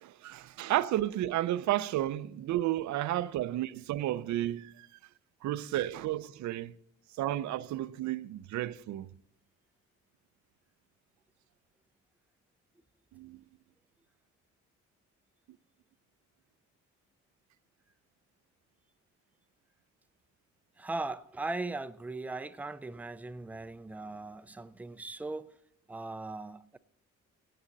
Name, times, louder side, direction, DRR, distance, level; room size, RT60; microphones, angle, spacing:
voice 1, 0.0-4.9 5.4-6.8 7.2-9.1 13.1-13.4, right 14 dB, 70° right, 0.5 m, -32 dB
voice 2, 20.8-25.6 25.9-26.8, right 2 dB, 5° right, 0.4 m, -39 dB
17.5 x 7.7 x 3.9 m
cardioid pair, 90°, 30 cm